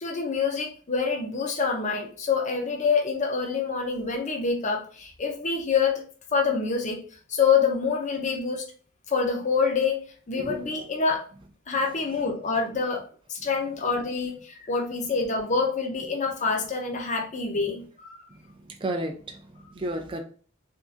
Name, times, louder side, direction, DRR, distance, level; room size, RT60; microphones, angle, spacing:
voice 1, 0.0-6.0 6.3-7.0 7.3-8.6 9.1-10.0 10.3-11.3 11.7-13.0 13.3-18.2 19.6-19.7, left 5 dB, 35° left, 1 dB, 0.6 m, -26 dB
voice 2, 18.3-20.2, right 1 dB, 25° right, 3 dB, 0.4 m, -33 dB
3.6 x 2.5 x 2.4 m, 0.40 s
head